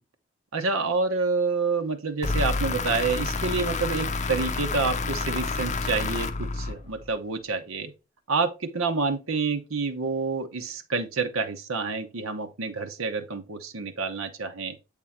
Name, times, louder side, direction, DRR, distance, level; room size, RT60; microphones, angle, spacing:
voice 1, 0.5-7.9 8.3-14.8, right 4 dB, 75° right, 0.9 m, -28 dB
sound 1, 2.2-7.2, left 3 dB, 35° left, 0.6 m, -29 dB
8.2 x 3.7 x 4.3 m
head